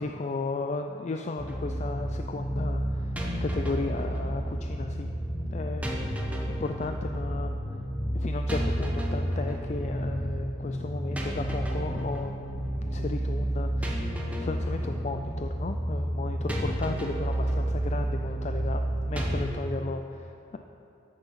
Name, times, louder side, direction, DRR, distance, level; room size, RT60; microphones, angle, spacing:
voice 1, 0.0-5.1 5.5-7.6 8.1-20.6, left 3 dB, 40° left, 5 dB, 0.4 m, -35 dB
sound 1, 1.4-19.5, right 1 dB, 10° right, 1.0 m, -30 dB
13.5 x 6.6 x 5.7 m, 2.7 s
head